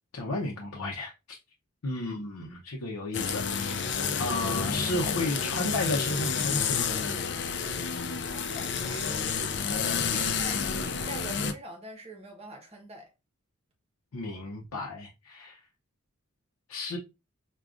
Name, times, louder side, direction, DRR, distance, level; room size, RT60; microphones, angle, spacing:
voice 1, 0.1-1.4 1.8-6.9 9.7-10.1 14.1-15.6 16.7-17.0, left 2 dB, 90° left, 0.6 m, -33 dB
sound 1, 3.1-11.5, left 6 dB, 50° left, 0.3 m, -30 dB
voice 2, 8.2-9.3 9.8-13.1, right 1 dB, 25° right, 0.9 m, -44 dB
4.9 x 2.3 x 2.4 m
head